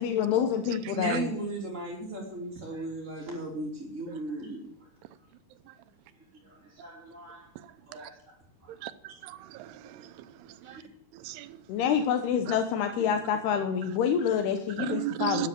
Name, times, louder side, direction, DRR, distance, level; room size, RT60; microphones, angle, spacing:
voice 1, 0.0-1.3 11.7-15.5, left 8 dB, 80° left, 3.1 m, -27 dB
voice 2, 0.9-4.9 6.3-7.5 7.9-8.2 8.6-8.7 10.6-10.9 13.0-13.1, right 2 dB, 20° right, 3.2 m, -37 dB
voice 3, 9.2-10.3 10.6-10.8 11.1-11.6 12.5-12.6 14.8-15.5, right 16 dB, 90° right, 2.8 m, -36 dB
12.5 x 10.0 x 7.7 m
omnidirectional pair, 4.6 m